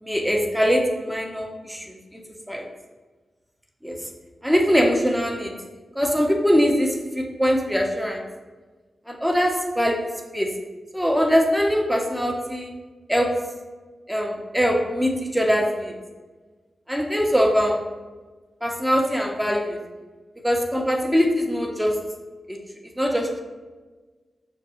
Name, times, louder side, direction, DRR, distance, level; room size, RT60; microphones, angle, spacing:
voice 1, 0.0-2.0 2.5-2.6 3.8-4.0 4.4-5.5 6.0-8.2 9.1-10.1 10.3-10.5 10.9-12.7 13.1-13.3 14.1-15.9 16.9-17.8 18.6-19.8 20.4-21.9 22.5-22.6 23.0-23.4, equal, 5° right, 1 dB, 0.7 m, -22 dB
6.4 x 2.3 x 2.9 m, 1.3 s
cardioid pair, 55°, 0 cm